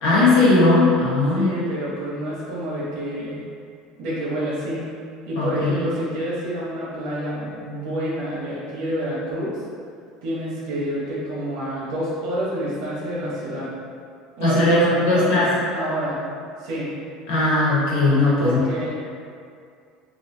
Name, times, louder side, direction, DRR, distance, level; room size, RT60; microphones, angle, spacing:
voice 1, 0.0-1.5 5.4-5.8 14.4-15.5 17.3-18.6, left 2 dB, 80° left, -8 dB, 1.2 m, -18 dB
voice 2, 1.3-3.4 4.0-4.8 5.3-9.5 10.2-13.7 14.4-14.8 15.1-16.2 16.6-16.9 18.4-18.9, equal, 70° right, -7 dB, 1.1 m, -28 dB
3.0 x 2.6 x 2.7 m, 2.3 s
cardioid pair, 145°, 0 cm